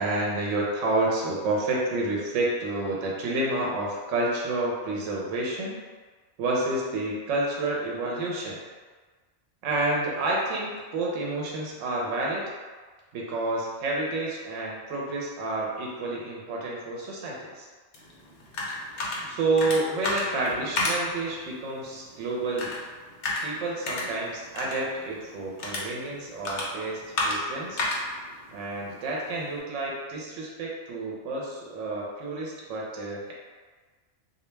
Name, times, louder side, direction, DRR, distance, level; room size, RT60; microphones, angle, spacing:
voice 1, 0.0-5.8 6.4-8.6 9.6-12.4 13.1-17.7 19.3-22.7 23.4-27.8 28.5-33.3, right 2 dB, 80° right, -3 dB, 0.9 m, -29 dB
sound 1, 17.9-29.6, left 2 dB, 60° left, 0.6 m, -34 dB
2.3 x 2.1 x 3.1 m, 1.4 s
omnidirectional pair, 1.3 m